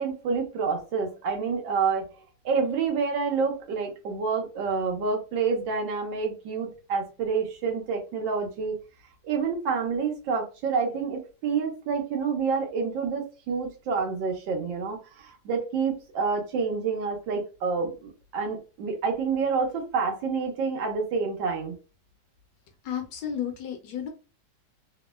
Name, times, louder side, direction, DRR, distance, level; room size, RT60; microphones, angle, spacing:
voice 1, 0.0-2.1 2.4-8.8 9.2-21.8, right 5 dB, 85° right, 2 dB, 1.5 m, -28 dB
voice 2, 22.8-24.1, left 9 dB, 70° left, 3 dB, 1.1 m, -32 dB
3.5 x 2.0 x 2.2 m, 0.33 s
omnidirectional pair, 2.0 m